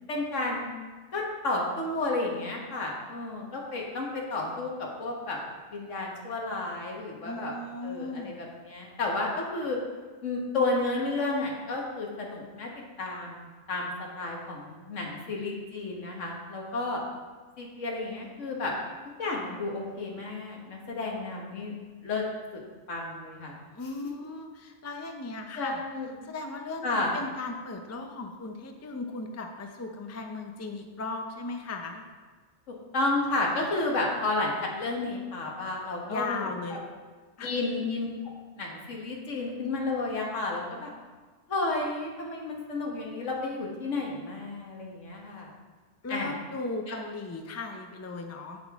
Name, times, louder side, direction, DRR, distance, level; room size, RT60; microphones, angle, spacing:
voice 1, 0.1-0.7 1.1-5.4 5.7-7.5 7.8-9.8 10.2-12.7 13.0-13.9 14.2-17.0 17.6-18.7 19.2-21.7 22.0-22.2 22.5-22.6 22.9-23.6 25.6-26.1 26.8-27.2 32.9-36.5 37.4-38.1 38.6-40.9 41.5-45.5 46.1-46.3 46.9-47.0, left 2 dB, 90° left, -1 dB, 1.7 m, -31 dB
voice 2, 7.2-8.4 23.7-25.8 26.2-32.0 36.1-36.9 37.4-37.5 46.0-48.6, left 3 dB, 20° left, 4 dB, 0.4 m, -37 dB
8.0 x 7.7 x 3.5 m, 1.4 s
omnidirectional pair, 1.2 m